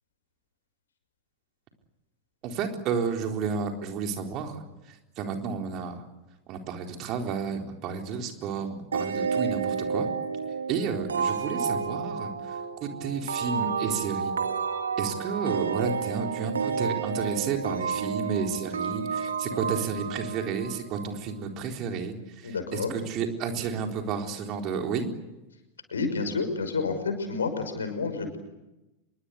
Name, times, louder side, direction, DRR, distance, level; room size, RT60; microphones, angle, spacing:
voice 1, 2.4-6.0 6.5-10.1 10.7-14.3 15.0-25.1, right 5 dB, 40° right, 4 dB, 4.0 m, -32 dB
sound 1, 8.9-21.3, right 6 dB, 70° right, 1.8 m, -31 dB
voice 2, 22.4-22.9 25.9-28.4, left 4 dB, 70° left, 7 dB, 5.9 m, -29 dB
26.5 x 23.0 x 8.2 m, 0.98 s
figure-of-eight pair, 90°, 0 cm